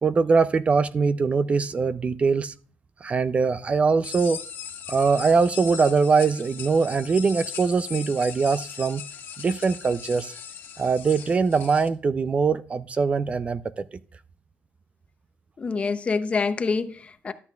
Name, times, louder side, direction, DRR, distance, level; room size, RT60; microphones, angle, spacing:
voice 1, 0.0-2.5 3.0-4.4 4.9-9.0 9.4-10.3 10.8-13.8, right 5 dB, 30° right, 0.3 m, -22 dB
sound 1, 4.0-11.9, left 8 dB, 70° left, 1.4 m, -39 dB
voice 2, 15.6-17.3, left 4 dB, 30° left, 0.6 m, -26 dB
11.5 x 8.0 x 2.3 m
cardioid pair, 120°, 4 cm